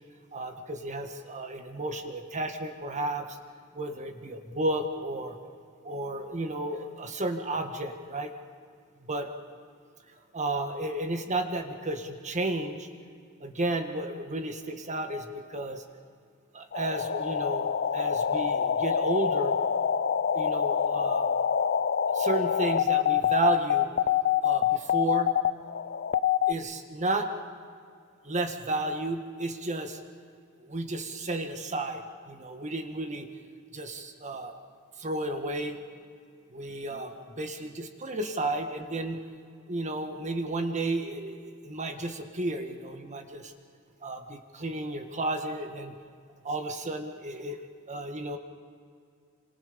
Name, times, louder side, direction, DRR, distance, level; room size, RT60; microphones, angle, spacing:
voice 1, 0.3-3.4 3.7-5.4 5.8-8.3 9.0-9.3 10.3-12.9 13.4-15.8 16.5-19.6 20.3-21.3 22.1-23.9 24.4-25.3 26.5-27.3 28.2-30.0 30.6-33.3 33.7-34.5 35.0-35.8 36.5-39.2 39.7-43.5 44.0-45.9 46.4-48.4, right 2 dB, 35° right, 6 dB, 1.7 m, -32 dB
sound 1, 16.7-26.5, left 8 dB, 45° left, 0.6 m, -26 dB
28.5 x 26.5 x 5.3 m, 2.3 s
head